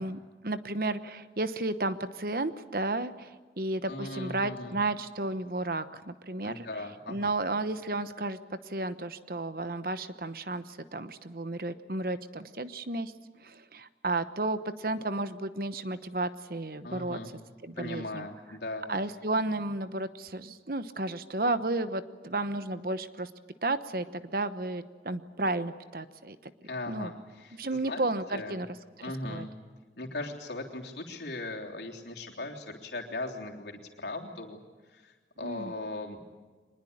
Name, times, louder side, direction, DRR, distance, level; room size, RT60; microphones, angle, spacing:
voice 1, 0.0-6.7 7.1-13.1 13.4-17.2 17.6-18.3 18.9-23.3 23.6-26.5 26.9-27.1 27.6-28.7 29.0-29.5 35.4-35.7, right 2 dB, 55° right, 12 dB, 1.0 m, -33 dB
voice 2, 3.9-4.8 6.4-7.3 16.8-17.4 17.8-18.8 26.6-28.6 29.0-29.6 30.0-34.6 34.9-36.2, left 2 dB, 80° left, 0 dB, 3.4 m, -39 dB
24.0 x 21.0 x 8.7 m, 1.3 s
head